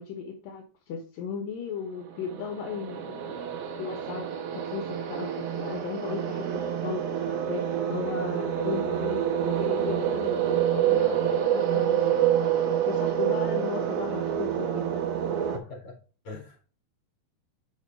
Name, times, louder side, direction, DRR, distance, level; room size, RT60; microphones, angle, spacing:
voice 1, 0.0-3.5 3.8-12.2 12.8-15.0 15.4-15.5, left 6 dB, 75° left, 2 dB, 2.9 m, -36 dB
sound 1, 2.1-15.6, right 9 dB, 80° right, 3.1 m, -27 dB
voice 2, 15.5-16.0 16.2-16.7, left 4 dB, 35° left, -1 dB, 5.0 m, -42 dB
7.0 x 6.5 x 3.1 m, 0.36 s
omnidirectional pair, 4.1 m